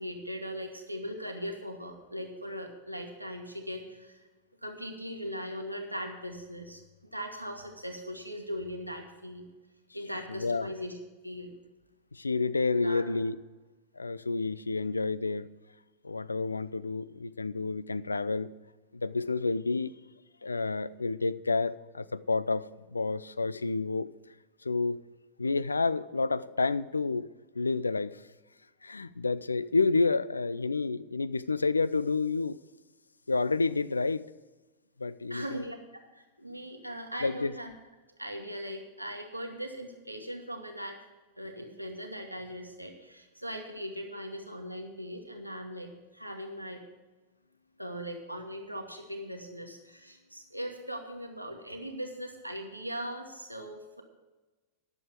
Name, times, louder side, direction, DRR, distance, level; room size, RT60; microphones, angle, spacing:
voice 1, 0.0-4.3 4.6-9.4 9.9-11.0 11.2-11.5 12.7-13.0 35.3-37.7 38.2-41.0 41.4-46.8 47.8-54.0, equal, 90° right, 1.5 m, -39 dB
voice 2, 10.3-10.7 12.1-13.4 14.0-15.5 16.0-18.5 18.9-19.9 20.4-24.1 24.6-25.0 25.4-27.3 27.6-28.2 28.8-32.6 33.3-34.3 35.0-35.6 37.2-37.5, left 3 dB, 80° left, 0.3 m, -29 dB
11.0 x 7.0 x 7.6 m
figure-of-eight pair, 90°, 0 cm